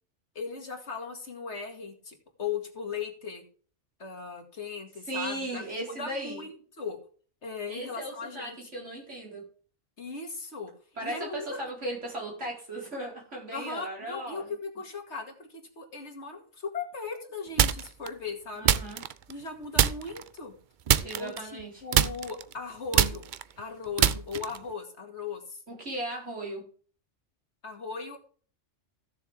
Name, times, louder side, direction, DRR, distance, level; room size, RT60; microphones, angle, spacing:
voice 1, 0.3-3.4 4.0-7.0 7.4-8.7 10.0-10.7 11.0-11.6 13.5-18.7 19.3-20.5 21.1-23.2 23.6-25.6 27.6-28.2, left 5 dB, 65° left, 2 dB, 2.5 m, -38 dB
voice 2, 5.1-6.4 7.7-9.4 11.0-14.5 18.6-19.0 21.0-21.8 25.7-26.6, right 1 dB, 75° right, -2 dB, 4.8 m, -37 dB
sound 1, 17.6-18.1 18.6-19.5 19.8-20.3 20.9-21.7 21.9-24.7, right 9 dB, 55° right, 0.6 m, -24 dB
15.5 x 7.0 x 3.6 m, 0.42 s
omnidirectional pair, 1.2 m